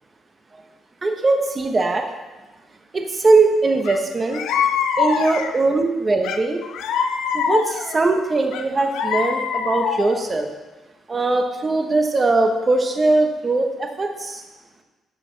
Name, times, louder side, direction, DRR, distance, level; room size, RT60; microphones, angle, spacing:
voice 1, 1.0-2.1 2.9-4.4 5.0-6.6 7.3-10.5 11.1-14.4, right 3 dB, 30° right, 4 dB, 1.2 m, -20 dB
sound 1, 3.8-4.0 4.3-5.7 6.2-8.0 8.5-10.3, left 6 dB, 85° left, 0.6 m, -24 dB
11.5 x 6.8 x 3.4 m, 1.2 s
cardioid pair, 90°, 0 cm